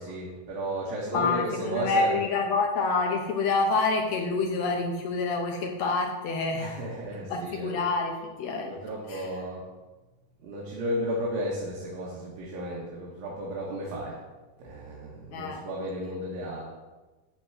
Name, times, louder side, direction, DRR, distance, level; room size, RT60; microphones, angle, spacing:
voice 1, 0.0-2.1 6.5-7.8 8.7-9.7 10.4-14.2 14.6-16.7, equal, 70° right, -4 dB, 3.2 m, -34 dB
voice 2, 1.1-6.8 7.3-8.7 9.1-9.3 15.3-15.6, left 3 dB, 65° left, 2 dB, 1.7 m, -27 dB
11.5 x 4.6 x 8.0 m, 1.2 s
omnidirectional pair, 4.3 m